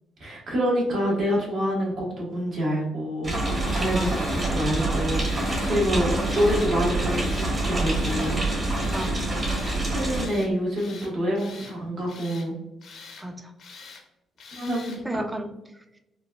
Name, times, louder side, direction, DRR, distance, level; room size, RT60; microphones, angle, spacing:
voice 1, 0.2-4.2 4.5-8.4 9.9-12.6 14.5-15.3, equal, 60° right, -3 dB, 1.3 m, -27 dB
sound 1, 3.2-10.2, right 2 dB, 40° right, 1.5 m, -26 dB
Tools, 3.6-4.5 5.1-5.8 6.2-6.7 7.1-7.6 7.9-8.4 8.7-9.1 9.4-9.8 10.1-10.5 10.8-11.8 12.1-12.5 12.8-13.3 13.6-14.0 14.4-15.0, left 4 dB, 65° left, 0.6 m, -44 dB
voice 2, 3.9-4.3 5.9-6.1 8.9-9.3 13.2-13.5 15.0-16.0, right 1 dB, 15° right, 6 dB, 0.4 m, -34 dB
3.9 x 2.3 x 2.3 m, 0.92 s
cardioid pair, 90°, 0 cm